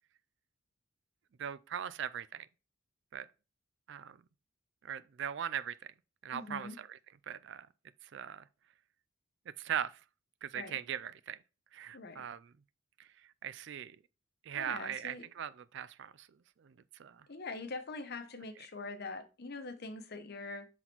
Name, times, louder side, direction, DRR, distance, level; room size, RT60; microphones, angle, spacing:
voice 1, 1.4-2.5 3.1-3.3 3.9-4.2 4.8-5.7 6.2-7.0 7.3-7.7 8.1-8.4 9.6-10.0 10.4-11.4 11.7-12.5 13.0-13.1 13.4-14.0 14.5-16.3 16.6-16.7 17.0-17.3, right 9 dB, 55° right, 0.4 m, -39 dB
voice 2, 6.3-6.7 10.5-10.8 11.9-12.2 14.6-15.3 17.3-20.7, left 3 dB, 50° left, 0.9 m, -43 dB
6.0 x 4.0 x 4.4 m
head